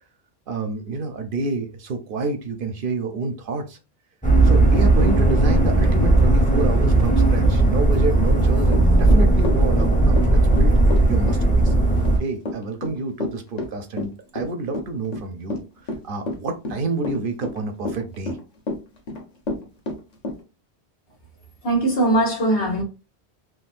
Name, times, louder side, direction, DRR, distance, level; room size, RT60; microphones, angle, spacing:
voice 1, 0.5-3.8 4.4-10.8 11.1-11.7 12.2-15.6 16.0-18.4, right 3 dB, 60° right, 0.7 m, -28 dB
sound 1, 4.2-12.2, right 2 dB, 10° left, 0.6 m, -17 dB
Run / Walk footsteps, 8.7-20.4, left 2 dB, 45° left, 0.8 m, -30 dB
voice 2, 21.6-22.8, right 1 dB, 85° left, 1.6 m, -20 dB
3.7 x 2.3 x 2.4 m
omnidirectional pair, 1.1 m